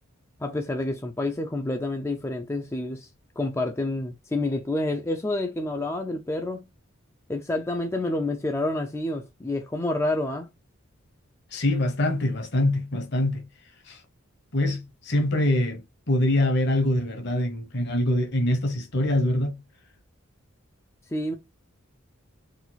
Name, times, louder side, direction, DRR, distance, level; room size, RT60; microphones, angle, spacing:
voice 1, 0.4-3.1 3.4-6.6 7.3-10.5 21.1-21.4, left 2 dB, 10° left, 0.4 m, -28 dB
voice 2, 11.5-13.5 13.9-14.0 14.5-19.6, left 1 dB, 50° left, 1.0 m, -24 dB
4.0 x 2.3 x 4.0 m
head